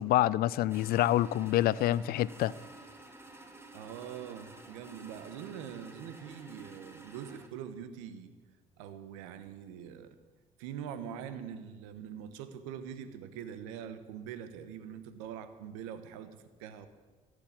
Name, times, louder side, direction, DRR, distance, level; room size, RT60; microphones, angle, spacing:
voice 1, 0.0-2.5, left 14 dB, 65° left, 21 dB, 0.5 m, -27 dB
sound 1, 0.7-7.5, right 2 dB, 15° right, 2.1 m, -51 dB
voice 2, 3.7-8.3 8.8-10.1 10.6-16.9, right 8 dB, 90° right, 11 dB, 1.0 m, -43 dB
16.0 x 6.6 x 8.7 m, 1.3 s
supercardioid pair, 65°, 17 cm